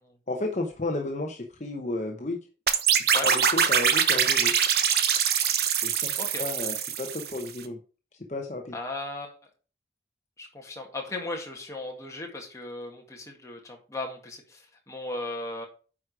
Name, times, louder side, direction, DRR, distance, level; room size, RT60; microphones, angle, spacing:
voice 1, 0.3-2.4 3.2-4.5 5.8-7.8 8.3-8.7, left 2 dB, 40° left, 2 dB, 0.9 m, -32 dB
sound 1, 2.7-7.5, right 8 dB, 65° right, 0.9 m, -24 dB
voice 2, 8.7-9.3 10.4-15.7, left 2 dB, 20° left, 1 dB, 2.0 m, -36 dB
9.4 x 4.9 x 4.8 m, 0.36 s
head